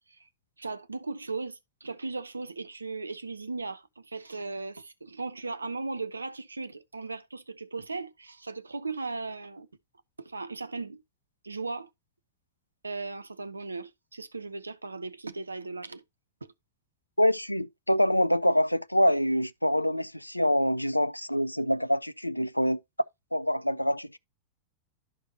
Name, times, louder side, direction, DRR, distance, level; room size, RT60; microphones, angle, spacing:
voice 1, 0.6-9.7 10.2-11.0 11.4-11.9 12.8-16.0 16.4-16.5, right 3 dB, 80° right, 0.6 m, -37 dB
voice 2, 17.2-22.8 23.3-24.2, equal, 90° left, 0.4 m, -25 dB
11.5 x 5.2 x 2.8 m
figure-of-eight pair, 90°, 0 cm